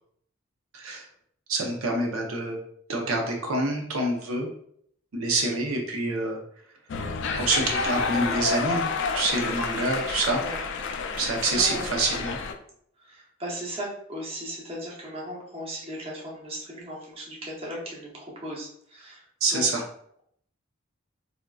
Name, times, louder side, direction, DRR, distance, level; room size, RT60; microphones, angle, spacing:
voice 1, 0.7-1.0 1.5-2.6 2.9-4.5 5.1-6.4 7.4-10.4 11.2-12.4 19.4-19.8, right 2 dB, 85° right, 1 dB, 0.7 m, -26 dB
sound 1, 6.9-12.5, left 4 dB, 60° left, 0.3 m, -29 dB
voice 2, 11.5-11.9 13.0-19.2 19.5-19.6, equal, 30° right, -3 dB, 0.7 m, -37 dB
3.5 x 2.5 x 2.3 m, 0.66 s
head